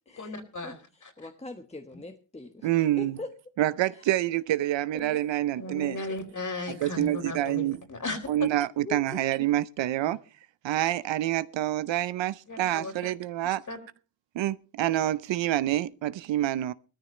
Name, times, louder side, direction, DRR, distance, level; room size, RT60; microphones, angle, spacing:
voice 1, 0.2-1.3 1.9-2.0 5.6-8.5 12.5-12.9 13.7-13.8, left 3 dB, 35° left, 4.0 m, -36 dB
voice 2, 1.2-2.7 3.0-3.3 4.9-5.2 5.6-6.2 6.9-7.1 7.6-7.8 8.8-9.2 10.1-10.2, left 2 dB, 15° left, 1.3 m, -42 dB
voice 3, 2.6-3.2 3.6-6.0 6.8-7.8 8.3-10.2 10.6-13.6 14.3-16.7, right 14 dB, 65° right, 0.7 m, -27 dB
18.0 x 14.0 x 3.2 m
cardioid pair, 75°, 48 cm